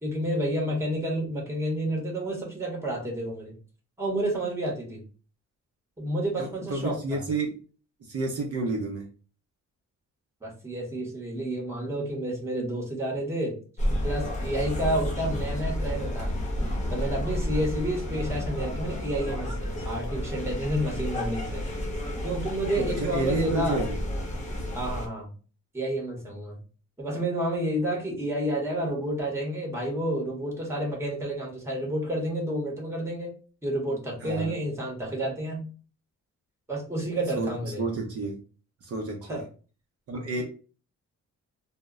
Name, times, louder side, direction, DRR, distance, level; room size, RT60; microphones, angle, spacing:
voice 1, 0.0-3.5 4.0-5.0 6.0-7.2 10.4-13.5 14.0-16.4 16.9-21.7 22.2-23.8 24.7-25.3 25.7-26.6 27.0-33.3 33.6-35.6 36.7-37.8 39.3-39.4 40.4-40.5, right 1 dB, 10° right, -2 dB, 0.9 m, -30 dB
voice 2, 6.4-7.5 8.0-9.1 22.8-24.0 34.2-34.6 37.4-37.5 37.8-38.4 38.8-39.4 40.1-40.4, right 3 dB, 50° right, 1 dB, 0.6 m, -30 dB
sound 1, 13.8-25.1, left 1 dB, 25° left, 0.7 m, -31 dB
2.1 x 2.0 x 3.5 m, 0.37 s
wide cardioid pair, 145°, 30 cm